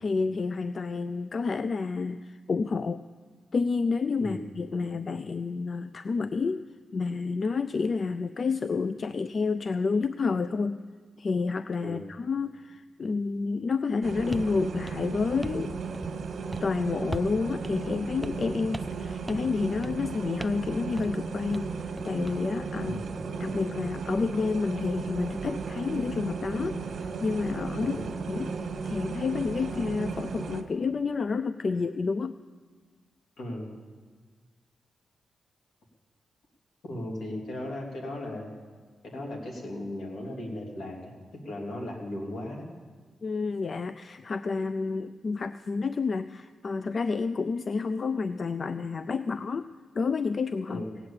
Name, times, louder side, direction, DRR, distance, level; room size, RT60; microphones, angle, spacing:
voice 1, 0.0-3.0 3.5-6.6 6.9-10.8 11.2-15.7 16.6-23.0 23.4-28.0 28.3-28.5 28.8-32.4 43.2-50.8, left 4 dB, 45° left, 12 dB, 0.4 m, -29 dB
sound 1, 14.0-30.6, right 5 dB, 65° right, 1.4 m, -35 dB
sound 2, 14.3-14.5 14.9-15.7 15.9-16.2 16.5-16.7 17.1-17.4 17.6-17.7 18.2-18.5 18.7-19.0 19.3-19.5 19.8-20.1 20.4-20.7 21.0-21.2 21.5-22.4, right 1 dB, 15° right, 0.5 m, -39 dB
voice 2, 22.8-23.1 27.8-28.1 33.4-33.7 36.8-38.5 39.0-41.1 41.4-42.6 50.7-51.0, left 1 dB, 75° left, 0 dB, 3.0 m, -36 dB
17.5 x 7.9 x 8.7 m, 1.5 s
cardioid pair, 95°, 0 cm